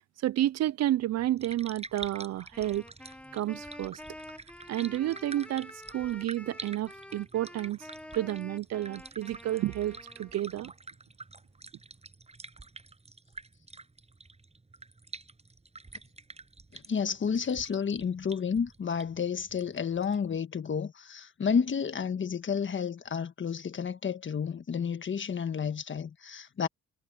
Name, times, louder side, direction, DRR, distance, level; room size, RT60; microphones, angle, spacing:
voice 1, 0.2-2.8 3.3-4.0 4.7-7.9 8.1-10.7, right 13 dB, 60° right, 0.5 m, -30 dB
sound 1, 1.2-20.3, right 3 dB, 20° right, 6.9 m, -48 dB
Wind instrument woodwind instrument, 2.5-10.7, left 1 dB, 5° left, 1.1 m, -48 dB
voice 2, 16.7-26.7, left 6 dB, 40° left, 1.5 m, -31 dB
cardioid pair, 90°, 30 cm